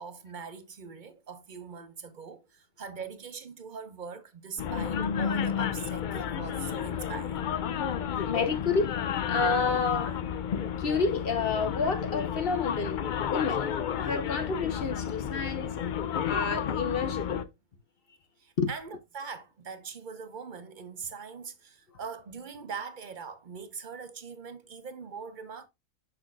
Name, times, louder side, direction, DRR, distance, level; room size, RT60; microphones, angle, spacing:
voice 1, 0.0-7.4 18.4-25.7, right 5 dB, 40° right, 0.8 m, -42 dB
sound 1, 4.6-17.4, left 8 dB, 85° left, 0.4 m, -31 dB
voice 2, 8.2-9.0 9.3-10.2 10.8-13.0 13.3-15.8 16.2-17.5 18.6-18.7, left 4 dB, 45° left, 1.1 m, -29 dB
6.6 x 6.2 x 2.3 m
omnidirectional pair, 1.4 m